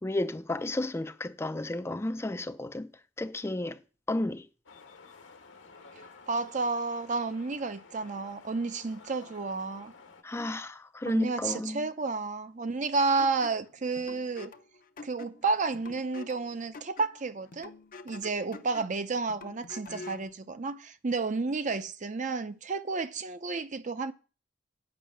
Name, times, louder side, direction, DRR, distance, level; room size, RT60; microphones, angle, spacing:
voice 1, 0.0-3.8 4.1-4.5 10.2-11.9, left 1 dB, 15° left, 0.4 m, -33 dB
sound 1, 4.7-10.2, left 4 dB, 85° left, 1.2 m, -52 dB
voice 2, 6.3-9.9 11.1-14.5 15.0-17.7 18.0-24.1, right 4 dB, 40° right, 0.6 m, -31 dB
sound 2, 13.2-20.3, left 3 dB, 50° left, 0.7 m, -47 dB
8.6 x 5.5 x 7.2 m
head